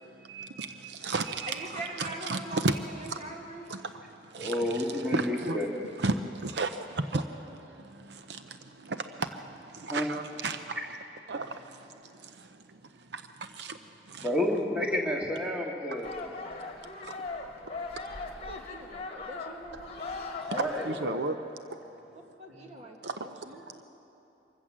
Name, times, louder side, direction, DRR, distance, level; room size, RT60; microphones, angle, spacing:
voice 1, 0.3-2.7 3.1-3.2 3.7-3.8 4.3-5.6 6.0-7.2 8.1-8.4 8.9-9.3 9.7-11.0 11.3-11.6 13.1-13.2 13.6-13.8 14.1-14.3 20.5-21.4 23.0-23.1, right 3 dB, 75° right, 9 dB, 0.7 m, -33 dB
voice 2, 1.5-3.7 7.1-7.2 18.5-20.0 22.4-23.6, right 1 dB, 40° right, 1 dB, 2.0 m, -42 dB
voice 3, 4.4-5.7 9.9-10.1 14.2-16.2 20.5-20.7 21.0-21.2, left 1 dB, 5° right, -1 dB, 2.0 m, -30 dB
sound 1, 16.0-21.1, left 3 dB, 35° left, 1.6 m, -39 dB
24.5 x 15.0 x 7.4 m, 2.9 s
head